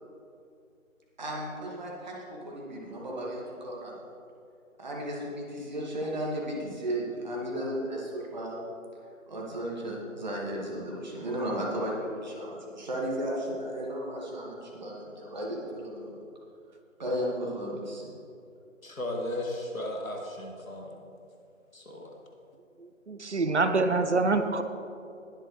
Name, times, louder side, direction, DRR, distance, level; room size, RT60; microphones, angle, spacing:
voice 1, 1.2-4.0 4.8-8.6 9.3-16.2 17.0-18.1, right 1 dB, 35° right, -3 dB, 2.2 m, -34 dB
voice 2, 18.8-21.0 21.7-22.1, left 1 dB, 85° left, 0 dB, 2.5 m, -35 dB
voice 3, 22.8-24.6, right 3 dB, 60° right, 9 dB, 0.8 m, -26 dB
20.5 x 7.9 x 3.3 m, 2.6 s
figure-of-eight pair, 160°, 40 cm